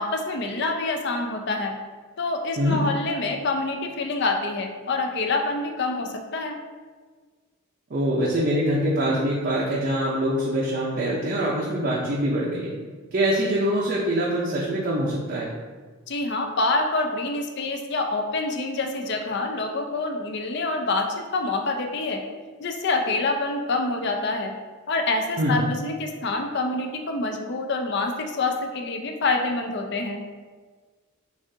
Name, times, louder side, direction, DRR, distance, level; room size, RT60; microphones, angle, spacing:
voice 1, 0.0-1.8 2.2-6.6 16.1-22.2 22.6-24.5 24.9-30.2, left 3 dB, 55° left, 4 dB, 0.5 m, -26 dB
voice 2, 7.9-12.7 13.1-15.5 25.4-25.6, equal, 45° right, -5 dB, 0.6 m, -24 dB
7.2 x 2.5 x 2.7 m, 1.5 s
head